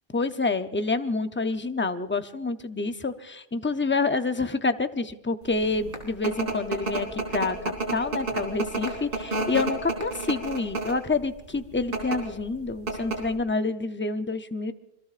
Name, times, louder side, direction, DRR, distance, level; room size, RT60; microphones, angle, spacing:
voice 1, 0.1-7.6 7.9-14.7, left 3 dB, 15° left, 9 dB, 0.5 m, -28 dB
sound 1, 5.6-11.1 11.8-12.2 12.5-12.6 12.9-13.4, right 3 dB, 60° right, 3.6 m, -29 dB
26.5 x 22.0 x 2.5 m, 0.87 s
omnidirectional pair, 1.0 m